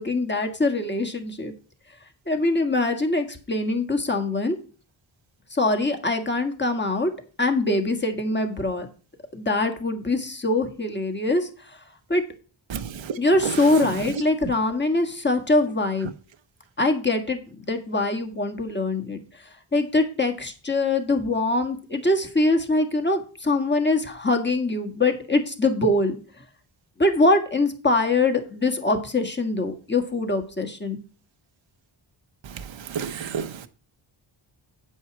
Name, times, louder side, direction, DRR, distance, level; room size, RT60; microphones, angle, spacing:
voice 1, 0.0-1.5 2.3-4.6 5.5-7.1 7.4-8.9 9.3-11.5 12.1-12.2 13.2-16.1 16.8-19.2 19.7-26.2 27.0-31.0, left 2 dB, 20° left, 1.6 m, -23 dB
voice 2, 32.9-33.7, right 7 dB, 65° right, 0.9 m, -30 dB
8.9 x 5.5 x 5.9 m
wide cardioid pair, 85°, 49 cm